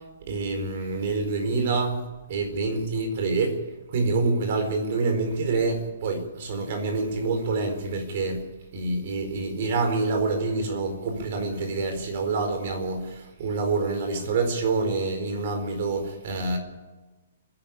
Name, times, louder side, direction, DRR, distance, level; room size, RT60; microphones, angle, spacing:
voice 1, 0.3-2.0 2.3-3.6 3.9-8.4 8.7-13.0 13.4-16.6, right 3 dB, 45° right, 4.6 m, -26 dB
29.0 x 11.0 x 8.7 m
hypercardioid pair, 170°, 0 cm